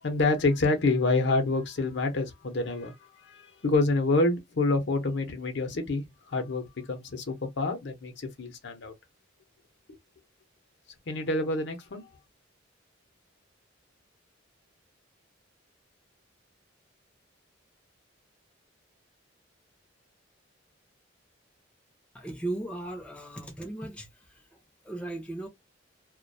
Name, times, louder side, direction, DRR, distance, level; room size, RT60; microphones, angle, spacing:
voice 1, 0.0-8.9 11.1-12.1, left 2 dB, 60° left, 0.6 m, -27 dB
voice 2, 22.1-24.1 24.8-25.5, right 2 dB, 5° left, 0.5 m, -36 dB
2.4 x 2.2 x 2.6 m
head